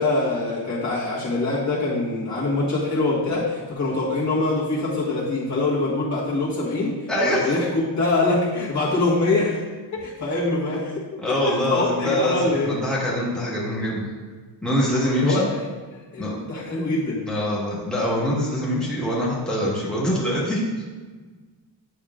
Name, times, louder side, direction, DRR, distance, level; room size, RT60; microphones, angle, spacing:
voice 1, 0.0-7.0 7.2-9.6 9.9-11.0 11.4-12.7 15.1-15.7 16.1-17.3, left 2 dB, 45° left, -8 dB, 1.6 m, -24 dB
voice 2, 7.1-7.5 11.2-14.0 14.6-15.5 16.2-16.3 17.3-20.6, equal, ahead, -7 dB, 1.4 m, -24 dB
9.5 x 6.3 x 2.4 m, 1.4 s
wide cardioid pair, 175°, 40 cm